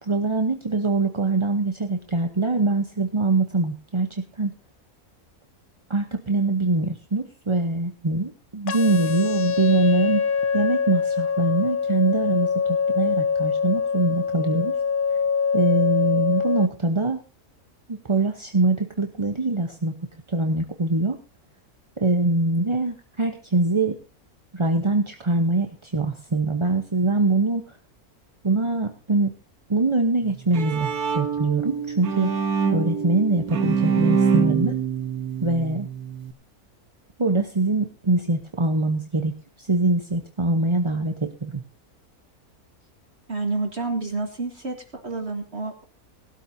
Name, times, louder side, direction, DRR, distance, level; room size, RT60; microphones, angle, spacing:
voice 1, 0.0-4.5 5.9-10.2 10.5-14.8 15.5-17.2 17.9-20.0 20.3-21.2 22.0-24.0 24.5-27.8 28.4-29.3 29.7-32.4 32.7-34.8 35.4-35.9 37.2-41.6, right 2 dB, 25° right, 5 dB, 0.8 m, -23 dB
sound 1, 8.7-16.7, left 6 dB, 50° left, 0.7 m, -24 dB
Bowed string instrument, 30.2-36.3, right 6 dB, 80° right, 1.6 m, -25 dB
voice 2, 43.3-45.8, right 3 dB, 45° right, 4 dB, 1.8 m, -29 dB
19.0 x 13.0 x 2.7 m, 0.33 s
omnidirectional pair, 1.6 m